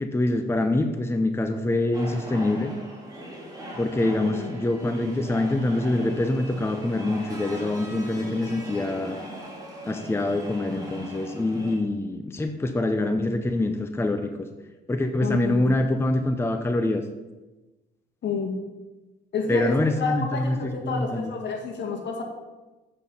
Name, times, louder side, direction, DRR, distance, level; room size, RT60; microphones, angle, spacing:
voice 1, 0.0-2.7 3.7-9.2 9.9-14.3 14.9-17.0 19.5-21.3, left 2 dB, 10° left, 6 dB, 0.7 m, -25 dB
sound 1, 1.9-11.8, right 1 dB, 20° right, 2.7 m, -39 dB
voice 2, 15.2-15.8 18.2-18.6 19.3-22.2, left 4 dB, 65° left, 2 dB, 1.8 m, -29 dB
7.5 x 6.4 x 5.4 m, 1.1 s
cardioid pair, 90°, 20 cm